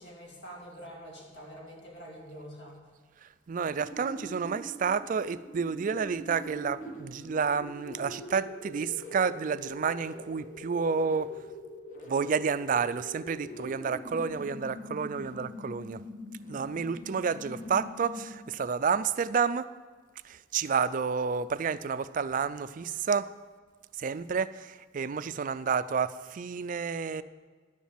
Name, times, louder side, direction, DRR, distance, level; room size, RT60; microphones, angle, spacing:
voice 1, 0.0-2.9 20.7-20.8, equal, 65° left, -1 dB, 2.8 m, -46 dB
voice 2, 3.2-11.3 12.1-16.0 16.5-19.7 20.2-23.3 24.0-27.2, right 6 dB, 45° right, 15 dB, 0.4 m, -30 dB
sound 1, 3.7-18.6, equal, 45° left, 1.4 m, -44 dB
11.0 x 7.2 x 7.4 m, 1.5 s
head